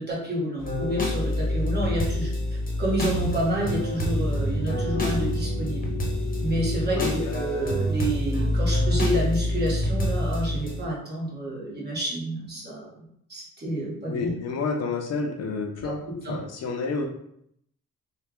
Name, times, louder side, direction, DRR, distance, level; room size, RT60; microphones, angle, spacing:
voice 1, 0.0-2.3 2.8-5.9 6.4-14.3 15.8-15.9 16.2-16.4, right 1 dB, 30° right, -5 dB, 1.3 m, -29 dB
sound 1, 0.6-10.8, left 1 dB, 25° left, 1.0 m, -26 dB
voice 2, 6.9-7.3 14.1-16.0 16.3-17.0, left 4 dB, 55° left, 3 dB, 0.6 m, -29 dB
3.3 x 2.3 x 3.5 m, 0.71 s
cardioid pair, 100°, 32 cm